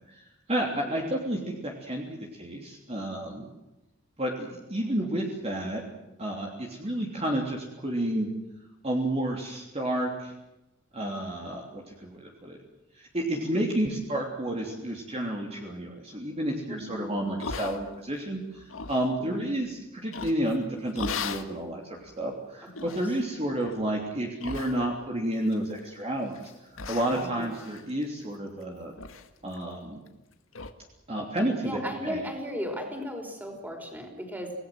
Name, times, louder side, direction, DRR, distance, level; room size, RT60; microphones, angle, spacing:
voice 1, 0.1-3.5 4.2-5.8 6.2-8.3 8.8-10.3 10.9-12.6 13.0-26.4 26.9-28.9 29.4-30.0 31.1-32.2, right 1 dB, 30° right, 0 dB, 3.3 m, -31 dB
voice 2, 0.8-1.1 13.4-13.6 16.7-17.1 19.2-19.4 22.8-23.0 27.0-27.6 31.6-34.5, equal, 10° right, 4 dB, 5.2 m, -36 dB
sound 1, 17.4-18.2 18.6-19.1 20.1-20.5 20.9-21.5 22.1-22.2 22.7-23.1 23.6-23.8 24.4-25.1 25.4-26.0 26.3-26.5 26.8-28.6 29.0-29.3 29.5-29.6 30.1-30.2 30.5-30.7, left 4 dB, 80° left, 1.9 m, -37 dB
27.5 x 18.5 x 7.8 m, 0.96 s
head